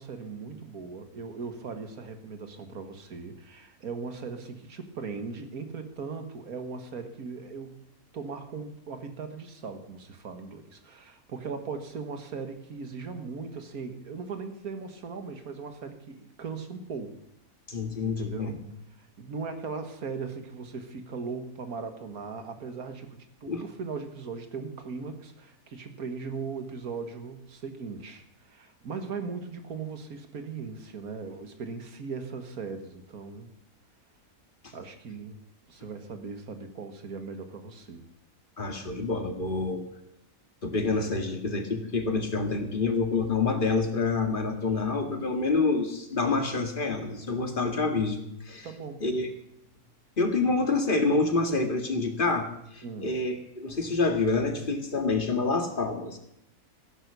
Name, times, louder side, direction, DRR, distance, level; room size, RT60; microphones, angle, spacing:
voice 1, 0.0-7.9 8.1-17.2 18.0-18.6 19.0-33.5 34.7-35.4 35.7-38.1 46.4-46.7 47.4-47.8 48.6-49.1 52.8-53.1, right 5 dB, 85° right, 7 dB, 2.1 m, -39 dB
voice 2, 17.7-18.5 23.5-23.6 38.6-39.9 40.6-48.2 48.5-48.7 49.0-49.3 50.2-52.5 52.7-56.2, left 3 dB, 35° left, 4 dB, 2.0 m, -27 dB
15.5 x 11.0 x 6.8 m, 0.78 s
omnidirectional pair, 1.5 m